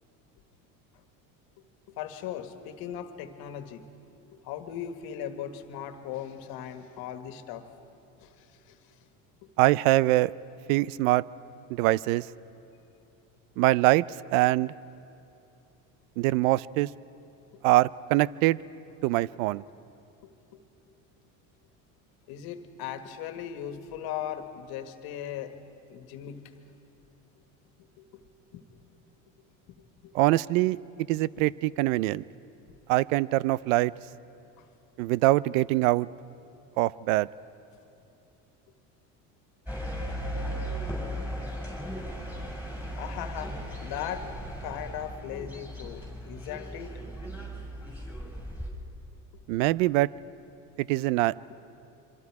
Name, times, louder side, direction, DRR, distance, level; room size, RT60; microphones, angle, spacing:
voice 1, 2.0-3.8 4.4-7.6 8.2-9.0 9.4-9.5 20.2-20.6 22.3-25.5 25.9-26.4 28.0-28.2 28.5-28.6 29.8-30.1 34.6-34.7 42.9-47.0, left 9 dB, 65° left, 8 dB, 1.7 m, -38 dB
voice 2, 9.6-10.3 10.7-11.2 11.7-12.2 13.6-14.7 16.2-16.9 17.6-18.6 19.0-19.6 30.1-30.8 31.1-32.2 32.9-33.9 35.0-36.1 36.8-37.3 49.5-50.1 50.8-51.3, right 17 dB, 80° right, 22 dB, 0.5 m, -23 dB
sound 1, 39.7-48.7, equal, 5° right, 5.8 m, -37 dB
26.5 x 24.0 x 4.8 m, 2.8 s
supercardioid pair, 105°, 39 cm